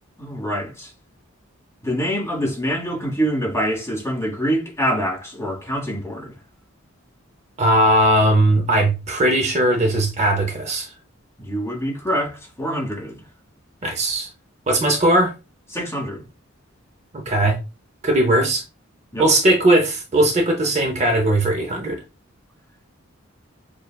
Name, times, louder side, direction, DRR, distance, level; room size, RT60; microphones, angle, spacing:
voice 1, 0.2-0.9 1.8-6.3 11.4-13.2 15.7-16.2 19.1-19.3, equal, 15° left, 1.4 m, -25 dB
voice 2, 7.6-10.9 13.8-14.3 14.7-15.3 17.1-17.6 18.0-18.6 19.2-22.0, right 1 dB, 35° right, 0.6 m, -18 dB
6.5 x 2.3 x 2.2 m
head